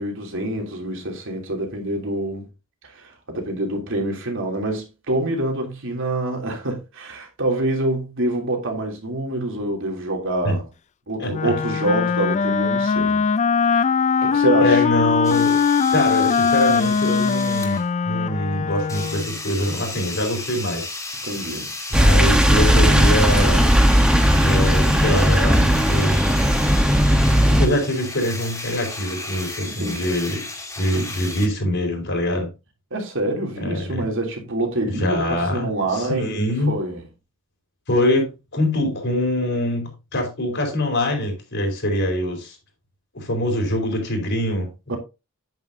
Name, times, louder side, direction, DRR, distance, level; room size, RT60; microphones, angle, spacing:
voice 1, 0.0-2.5 2.8-10.6 11.1-13.2 14.2-14.8 21.2-21.7 29.8-30.1 32.9-36.4 36.7-37.0 44.9-45.0, right 1 dB, 65° right, 3.1 m, -26 dB
voice 2, 11.2-11.5 14.6-15.6 15.9-20.9 21.9-23.7 24.3-26.2 27.5-30.4 30.8-32.5 33.6-34.0 34.9-36.7 37.9-42.6 43.1-45.0, left 1 dB, 60° left, 4.3 m, -24 dB
Wind instrument woodwind instrument, 11.3-19.4, left 6 dB, 35° left, 0.3 m, -20 dB
sound 1, 15.2-17.9 18.9-31.5, left 2 dB, 15° left, 2.6 m, -34 dB
sound 2, 21.9-27.7, equal, 5° right, 1.1 m, -16 dB
9.4 x 9.1 x 2.7 m
head